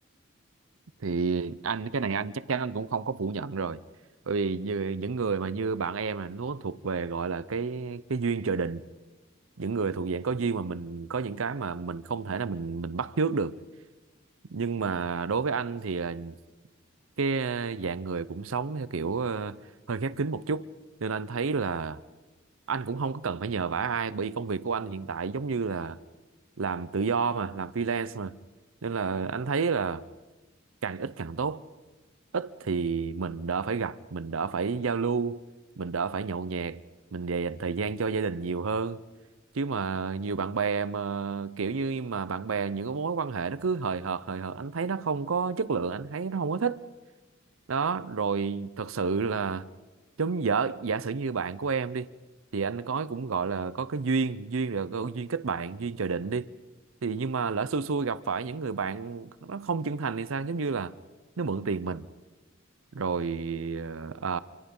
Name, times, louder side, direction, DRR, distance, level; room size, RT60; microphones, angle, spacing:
voice 1, 1.0-3.8 4.3-8.8 9.6-13.6 14.5-16.4 17.2-19.6 19.9-20.7 21.0-22.0 22.7-26.0 26.6-28.4 28.8-30.0 30.8-31.6 32.3-35.4 35.8-36.8 37.1-39.0 39.5-46.8 47.7-49.7 50.2-52.1 52.5-56.5 57.0-60.9 61.4-62.1 62.9-64.4, right 5 dB, 70° right, 0.6 m, -30 dB
27.0 x 24.5 x 5.4 m
head